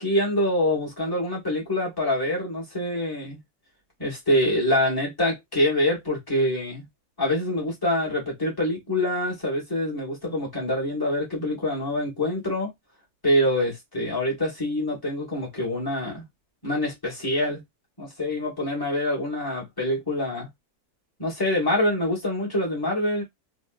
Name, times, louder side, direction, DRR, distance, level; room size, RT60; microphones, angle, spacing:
voice 1, 0.0-3.4 4.0-6.8 7.2-12.7 13.2-16.2 16.6-17.6 18.0-20.5 21.2-23.2, left 1 dB, 15° left, 1.7 m, -25 dB
3.7 x 2.4 x 2.4 m
omnidirectional pair, 1.6 m